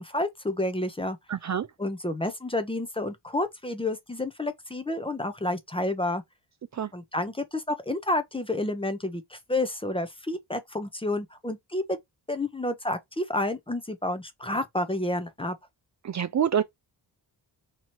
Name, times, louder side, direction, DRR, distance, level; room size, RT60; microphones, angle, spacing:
voice 1, 0.0-1.2 1.8-6.2 6.9-12.0 12.3-15.6, left 1 dB, 15° left, 0.6 m, -30 dB
voice 2, 1.3-1.7 6.7-6.9 16.0-16.6, right 8 dB, 45° right, 0.5 m, -26 dB
3.0 x 2.7 x 4.4 m
cardioid pair, 105°, 42 cm